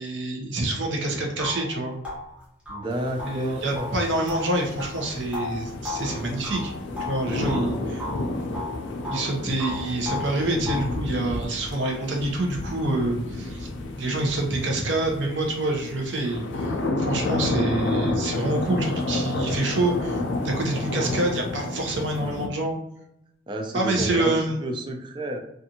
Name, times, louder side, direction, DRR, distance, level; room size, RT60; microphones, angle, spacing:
voice 1, 0.0-1.9 3.2-6.7 7.0-8.0 9.1-13.7 14.0-22.8 23.7-24.7, right 2 dB, 80° right, 1 dB, 0.7 m, -27 dB
sound 1, 0.8-0.9 1.4-7.7 8.0-9.3 9.6-11.0, left 3 dB, 5° right, 0.7 m, -35 dB
voice 2, 2.7-3.9 23.5-24.3 24.6-25.4, right 1 dB, 25° right, 3 dB, 0.3 m, -30 dB
sound 2, 2.9-22.5, left 2 dB, 80° left, 0.4 m, -31 dB
2.5 x 2.4 x 2.8 m, 0.78 s
head